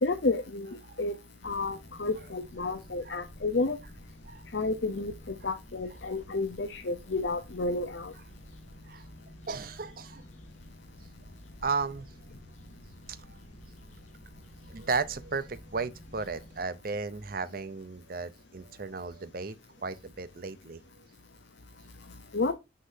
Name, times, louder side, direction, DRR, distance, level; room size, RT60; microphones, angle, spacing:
voice 1, 0.0-1.1 1.4-3.8 4.5-8.1 22.3-22.5, left 3 dB, 60° left, 0.7 m, -31 dB
sound 1, 1.4-16.6, equal, 35° left, 1.4 m, -51 dB
voice 2, 9.5-10.2 11.6-12.1 13.1-13.4 14.7-21.0, right 4 dB, 45° right, 0.6 m, -35 dB
6.4 x 5.7 x 2.7 m
head